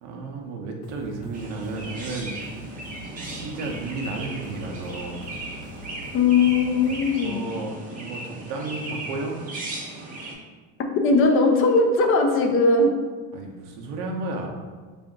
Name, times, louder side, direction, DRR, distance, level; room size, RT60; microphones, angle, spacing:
voice 1, 0.0-2.4 2.7-2.8 3.2-5.2 7.2-9.4 13.3-14.5, right 3 dB, 85° right, 1 dB, 0.7 m, -33 dB
sound 1, 0.8-7.2, equal, 85° left, 0.6 m, -44 dB
Chirp tweet, 1.3-10.3, right 2 dB, 25° right, 0.7 m, -36 dB
voice 2, 6.1-7.4 11.0-13.0, left 3 dB, 40° left, 4 dB, 0.5 m, -19 dB
3.5 x 2.5 x 3.7 m, 1.4 s
cardioid pair, 130°, 35 cm